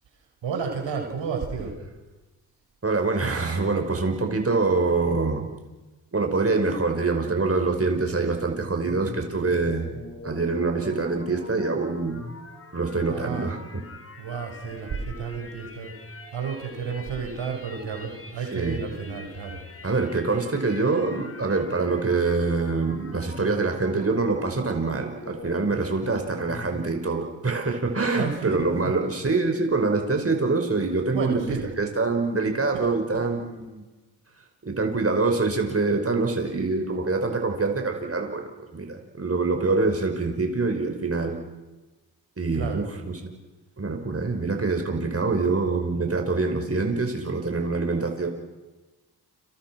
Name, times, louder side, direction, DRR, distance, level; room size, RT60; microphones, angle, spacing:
voice 1, 0.4-1.8 13.1-13.5 14.2-15.9 16.3-19.6 28.1-28.9 31.1-31.7 32.7-33.3 42.5-42.9, right 5 dB, 70° right, 3 dB, 5.5 m, -32 dB
voice 2, 2.8-5.5 6.1-9.9 10.2-12.2 12.7-13.6 18.5-18.8 19.8-31.4 31.8-33.8 34.6-41.4 42.4-43.1 43.8-48.3, right 3 dB, 30° right, 4 dB, 5.5 m, -25 dB
sound 1, 8.8-26.9, left 2 dB, 30° left, 4.7 m, -43 dB
30.0 x 26.0 x 6.1 m, 1.2 s
supercardioid pair, 45°, 46 cm